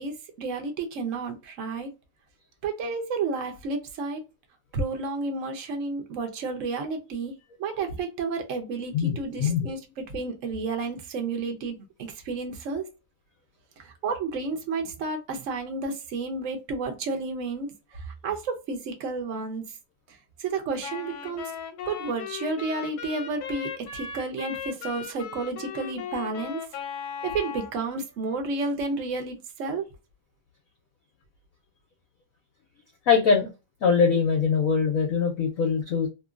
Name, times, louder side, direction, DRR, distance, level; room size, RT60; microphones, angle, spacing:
voice 1, 0.0-1.9 2.6-4.2 4.7-7.3 7.6-12.9 13.8-19.6 20.1-21.5 21.9-26.6 27.2-29.8, right 4 dB, 65° right, 0.8 m, -31 dB
voice 2, 8.9-9.7 33.1-33.5 33.8-36.1, left 6 dB, 65° left, 0.8 m, -22 dB
Wind instrument woodwind instrument, 20.8-27.8, left 7 dB, 85° left, 1.4 m, -37 dB
2.9 x 2.6 x 2.4 m
omnidirectional pair, 2.2 m